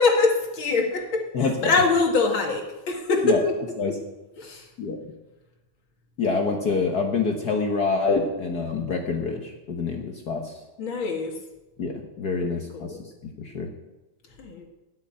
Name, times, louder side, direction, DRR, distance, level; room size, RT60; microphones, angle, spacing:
voice 1, 0.0-3.4 3.9-4.0 4.4-4.6 10.8-11.3 12.4-13.0 14.4-14.6, left 3 dB, 45° left, 2 dB, 2.2 m, -24 dB
voice 2, 1.3-1.8 3.2-3.4 3.8-4.0 4.8-5.0 6.2-10.6 11.8-13.0 13.2-13.7, left 4 dB, 65° left, 3 dB, 1.0 m, -26 dB
13.0 x 6.6 x 9.7 m, 1.1 s
omnidirectional pair, 3.4 m